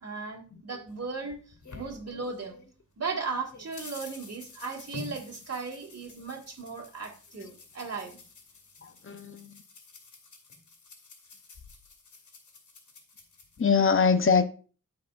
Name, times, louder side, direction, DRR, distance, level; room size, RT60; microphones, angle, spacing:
voice 1, 0.0-1.4 1.7-2.6 3.0-8.2, right 4 dB, 55° right, 2.0 m, -36 dB
sound 1, 0.9-2.7 3.1-13.6, left 3 dB, 80° left, 2.2 m, -49 dB
voice 2, 8.8-9.6 13.6-14.4, left 5 dB, 45° left, 0.8 m, -23 dB
13.0 x 4.8 x 2.5 m
wide cardioid pair, 80°, 29 cm